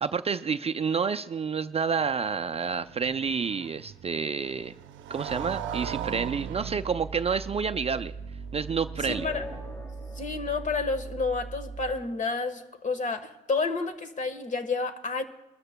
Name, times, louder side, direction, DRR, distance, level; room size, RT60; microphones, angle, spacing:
voice 1, 0.0-4.8 5.1-8.1 8.5-9.3, right 6 dB, 30° right, 10 dB, 0.4 m, -29 dB
Motorcycle, 1.9-10.0, right 10 dB, 75° right, 0.6 m, -41 dB
sound 1, 5.3-12.1, right 4 dB, 70° left, 4.3 m, -40 dB
voice 2, 9.0-9.4 10.1-15.2, left 4 dB, 40° left, 9 dB, 1.3 m, -30 dB
sound 2, 9.0-11.7, left 1 dB, 10° left, 1.2 m, -43 dB
22.0 x 13.0 x 2.2 m, 1.0 s
cardioid pair, 90°, 20 cm